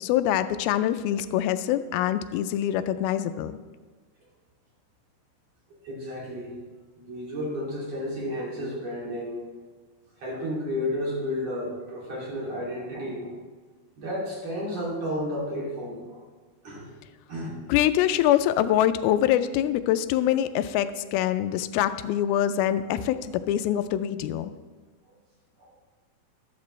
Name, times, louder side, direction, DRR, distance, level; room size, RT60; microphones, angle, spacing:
voice 1, 0.0-3.6 17.7-24.5, left 11 dB, 85° left, 11 dB, 2.4 m, -24 dB
voice 2, 5.8-6.6 7.0-9.4 10.2-13.4 14.0-16.3 16.6-16.9 17.3-17.6 25.6-25.9, left 1 dB, 45° right, -5 dB, 3.5 m, -32 dB
13.5 x 12.5 x 3.2 m, 1.4 s
omnidirectional pair, 4.3 m